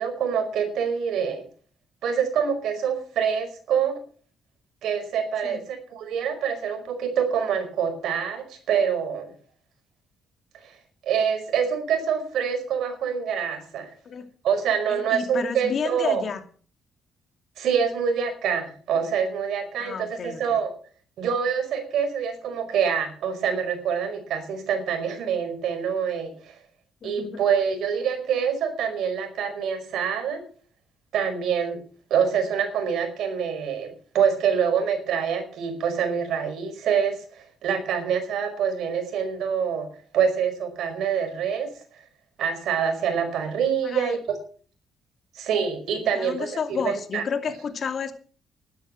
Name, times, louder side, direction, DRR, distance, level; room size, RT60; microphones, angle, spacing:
voice 1, 0.0-1.5 2.0-4.0 4.8-9.3 11.0-13.9 14.4-16.2 17.6-20.7 21.2-26.3 27.0-30.4 31.1-31.8 32.1-37.2 37.6-39.9 40.1-41.7 42.4-44.2 45.3-47.2, right 7 dB, 80° right, 7 dB, 5.0 m, -25 dB
voice 2, 14.9-16.4 19.8-20.6 27.0-27.4 43.8-44.2 46.1-48.1, left 6 dB, 50° left, 7 dB, 2.5 m, -31 dB
12.5 x 12.0 x 6.4 m, 0.43 s
cardioid pair, 90°, 0 cm